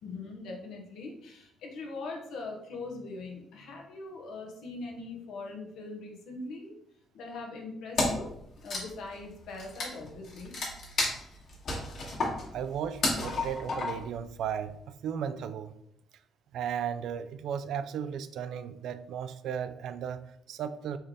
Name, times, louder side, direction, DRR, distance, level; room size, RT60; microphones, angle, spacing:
voice 1, 0.0-6.7 7.1-8.3 8.6-10.5, left 3 dB, 80° left, 1.0 m, -41 dB
Wood, 8.0-8.3 8.6-14.2, left 2 dB, 60° left, 1.6 m, -32 dB
voice 2, 12.5-15.8 16.5-21.0, right 8 dB, 80° right, 0.3 m, -35 dB
4.3 x 3.3 x 3.6 m
cardioid pair, 90°, 0 cm